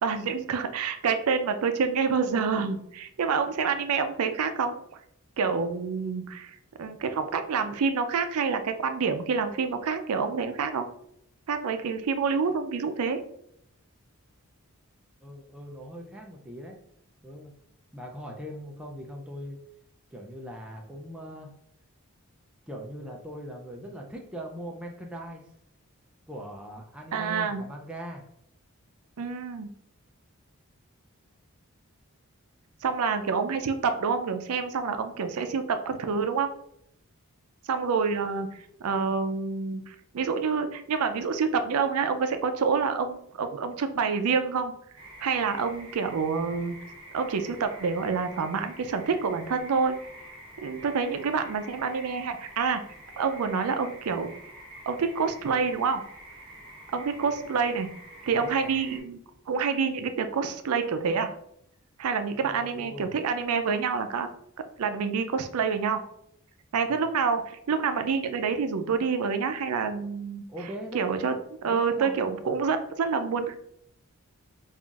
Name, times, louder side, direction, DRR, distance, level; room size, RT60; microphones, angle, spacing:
voice 1, 0.0-4.7 5.4-10.8 11.5-13.2 27.1-27.6 29.2-29.7 32.8-36.5 37.7-38.5 38.8-44.7 45.2-46.8 47.1-50.0 50.6-52.8 53.2-54.3 54.9-56.0 56.9-57.9 58.3-59.2 59.5-61.3 62.0-64.3 64.8-66.0 66.7-70.5 70.9-71.4 71.6-73.5, right 5 dB, 80° right, 8 dB, 0.4 m, -27 dB
voice 2, 15.2-16.8 17.2-17.5 17.9-19.6 20.1-21.5 22.7-25.5 26.3-28.2 57.3-57.5 58.2-58.7 62.4-63.1 66.9-67.0 70.5-71.1 71.6-72.2, equal, 5° right, -1 dB, 0.4 m, -40 dB
sound 1, 45.0-59.0, right 1 dB, 20° right, 0.8 m, -47 dB
5.5 x 2.5 x 2.4 m, 0.71 s
head